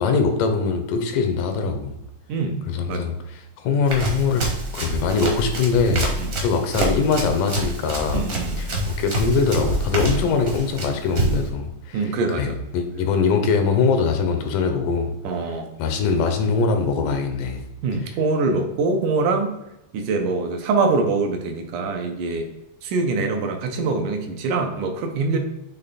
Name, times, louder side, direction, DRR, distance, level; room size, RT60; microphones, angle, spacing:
voice 1, 0.0-2.0 2.7-6.1 6.4-8.3 8.6-12.0 12.3-15.1 15.4-15.5 15.8-17.6, left 5 dB, 90° left, 6 dB, 2.4 m, -22 dB
Run, 3.9-11.5, right 1 dB, 50° right, 1.0 m, -27 dB
voice 2, 8.1-8.6 11.9-12.6 15.2-15.7 17.8-19.5 19.9-22.4 22.8-25.4, right 3 dB, 85° right, 4 dB, 2.4 m, -24 dB
7.3 x 3.3 x 4.1 m, 0.91 s
omnidirectional pair, 3.6 m